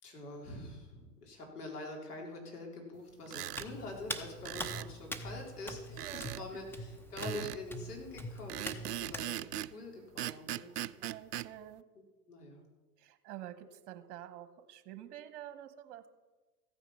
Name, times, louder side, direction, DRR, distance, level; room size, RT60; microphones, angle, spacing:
voice 1, 0.0-10.7 12.3-12.6, left 2 dB, 80° left, 0 dB, 3.8 m, -45 dB
sound 1, 3.3-3.7 4.4-4.9 6.0-6.4 7.2-7.6 8.5-9.7 10.2-11.5, right 13 dB, 85° right, 0.5 m, -39 dB
Hands, 3.5-9.3, left 1 dB, 5° left, 0.9 m, -43 dB
voice 2, 5.9-6.4 11.0-11.8 13.0-16.0, right 11 dB, 50° right, 11 dB, 1.2 m, -48 dB
14.5 x 9.2 x 5.6 m, 1.2 s
hypercardioid pair, 105°, 46 cm